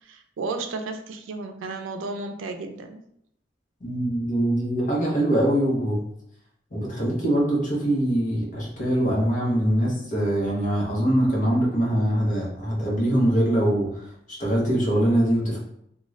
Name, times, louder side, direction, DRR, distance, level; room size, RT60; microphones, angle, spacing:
voice 1, 0.0-3.0, right 3 dB, 85° right, 6 dB, 0.4 m, -33 dB
voice 2, 3.8-6.0 6.7-15.6, right 1 dB, 45° left, -4 dB, 0.9 m, -23 dB
2.5 x 2.2 x 3.1 m, 0.73 s
head